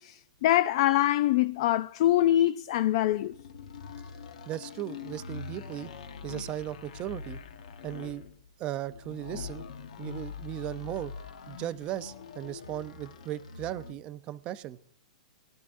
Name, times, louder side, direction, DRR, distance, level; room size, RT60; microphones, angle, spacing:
voice 1, 0.0-3.3, left 13 dB, 50° left, 0.4 m, -24 dB
sound 1, 3.2-14.0, left 6 dB, 85° left, 1.2 m, -43 dB
voice 2, 4.5-5.9 6.2-7.4 7.8-8.3 8.6-9.7 10.0-11.1 11.5-14.8, right 13 dB, 30° right, 0.6 m, -37 dB
21.5 x 12.0 x 2.6 m
hypercardioid pair, 155°, 4 cm